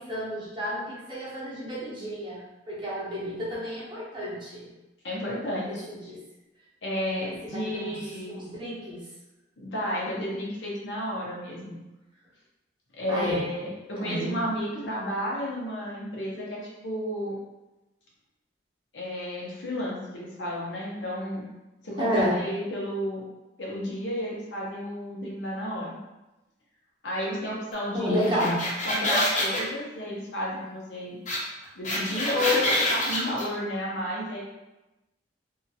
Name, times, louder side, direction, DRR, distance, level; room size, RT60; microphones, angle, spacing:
voice 1, 0.0-4.7 5.7-6.2 7.1-7.9 8.3-9.1 13.1-13.4 14.0-14.4 22.0-22.4 27.9-28.6, equal, 25° right, -8 dB, 0.9 m, -31 dB
voice 2, 5.0-5.8 6.8-8.4 9.6-11.8 13.0-17.3 18.9-21.4 21.8-23.2 23.6-26.0 27.0-28.3 28.8-31.2 31.7-34.4, left 1 dB, 85° left, -5 dB, 0.9 m, -32 dB
sound 1, 28.2-29.6 31.3-31.4 31.6-33.4, left 1 dB, 45° left, 0.8 m, -26 dB
2.8 x 2.5 x 2.7 m, 1.0 s
head